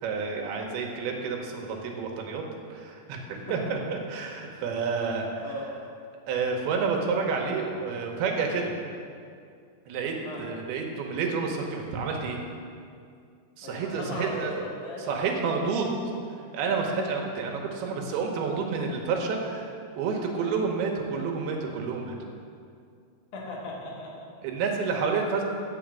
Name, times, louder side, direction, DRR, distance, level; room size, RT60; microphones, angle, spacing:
voice 1, 0.0-2.4 2.7-5.4 6.3-8.7 9.9-12.4 13.6-14.6 15.1-15.9 16.5-22.1 24.4-25.4, right 5 dB, 85° right, 1 dB, 2.9 m, -29 dB
voice 2, 3.4-3.8 5.4-5.6 10.2-10.4 13.6-15.2 23.3-24.3 24.5-24.6, left 2 dB, 55° left, -3 dB, 2.3 m, -38 dB
9.2 x 5.5 x 7.5 m, 2.3 s
omnidirectional pair, 4.4 m